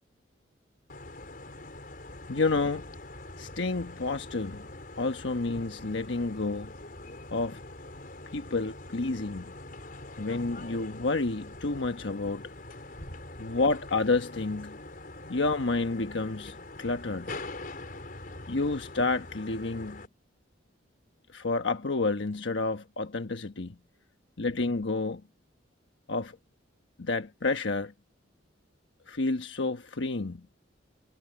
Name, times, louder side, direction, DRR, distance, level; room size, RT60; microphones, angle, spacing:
sound 1, 0.9-20.1, left 2 dB, 50° left, 4.7 m, -44 dB
voice 1, 2.3-2.8 3.4-4.6 5.0-6.7 7.3-7.6 8.3-9.5 10.2-12.4 13.4-14.8 15.3-17.4 18.5-20.0 21.3-23.8 24.4-25.2 26.1-26.4 27.0-27.9 29.1-30.4, left 3 dB, 80° left, 1.2 m, -30 dB
head